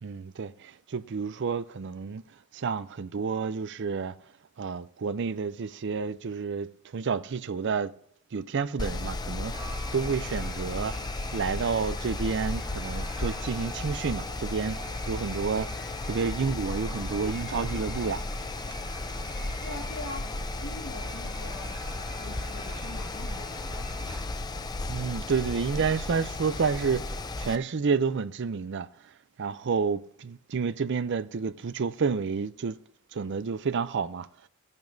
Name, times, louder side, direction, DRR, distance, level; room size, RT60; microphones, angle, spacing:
voice 1, 0.0-2.2 2.5-4.2 4.6-7.9 8.3-11.0 11.3-15.7 16.1-18.2 24.9-27.1 27.4-28.9 29.4-32.8 33.1-34.3, right 5 dB, 55° right, 0.5 m, -30 dB
Mechanical fan, 8.8-27.6, left 2 dB, 20° left, 0.5 m, -34 dB
sound 1, 9.5-24.2, right 2 dB, 25° right, 1.6 m, -46 dB
voice 2, 19.6-20.3 20.6-21.8 22.2-23.9, left 2 dB, 85° left, 1.7 m, -42 dB
17.5 x 10.5 x 2.7 m
head